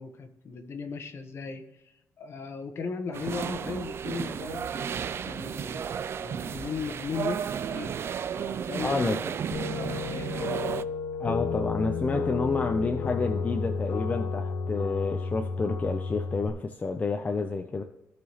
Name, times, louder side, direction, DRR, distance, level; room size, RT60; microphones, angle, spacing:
voice 1, 0.0-5.8 6.2-8.0 8.3-9.1 9.5-10.8, left 5 dB, 55° left, 6 dB, 1.3 m, -37 dB
sound 1, 3.1-10.8, right 8 dB, 50° right, 0.4 m, -33 dB
voice 2, 8.8-9.2 11.2-17.8, left 3 dB, 25° left, 4 dB, 0.6 m, -29 dB
sound 2, 9.5-16.5, left 5 dB, 85° left, 1.0 m, -32 dB
15.0 x 6.0 x 3.1 m, 0.91 s
cardioid pair, 125°, 5 cm